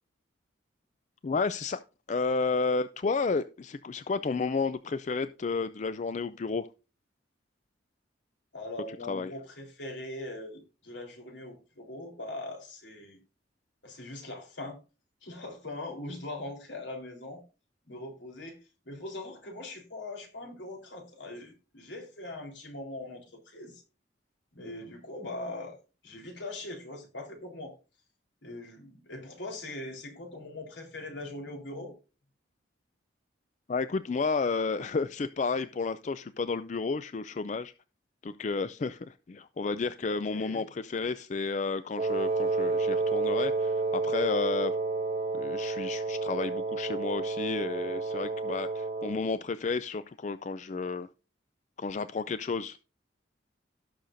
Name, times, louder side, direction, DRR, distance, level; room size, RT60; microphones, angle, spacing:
voice 1, 1.2-1.8 2.1-6.7 9.0-9.3 33.7-37.7 38.2-44.7 45.3-51.1 51.8-52.8, left 4 dB, 40° left, 13 dB, 0.4 m, -31 dB
voice 2, 8.5-13.2 13.8-14.8 15.2-17.4 17.9-23.8 24.5-25.8 26.0-27.7 28.4-31.9 40.3-40.6, left 2 dB, 75° left, 2 dB, 3.8 m, -41 dB
Wind instrument woodwind instrument, 42.0-49.3, right 3 dB, 35° right, 0.5 m, -30 dB
17.5 x 6.5 x 2.6 m, 0.32 s
head